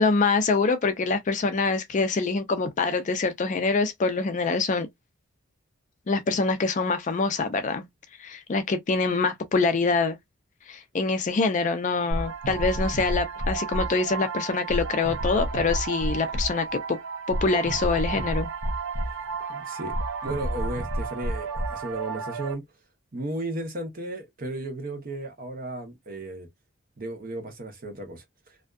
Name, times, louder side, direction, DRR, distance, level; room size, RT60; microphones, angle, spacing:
voice 1, 0.0-4.9 6.1-7.9 8.2-10.2 10.7-17.0 17.3-18.5, left 4 dB, 35° left, 0.4 m, -25 dB
sound 1, 12.1-22.5, right 2 dB, 75° right, 0.5 m, -30 dB
voice 2, 19.5-20.0 20.2-22.6 23.1-26.5 27.0-28.2, right 2 dB, 40° right, 0.8 m, -34 dB
2.5 x 2.2 x 2.3 m
head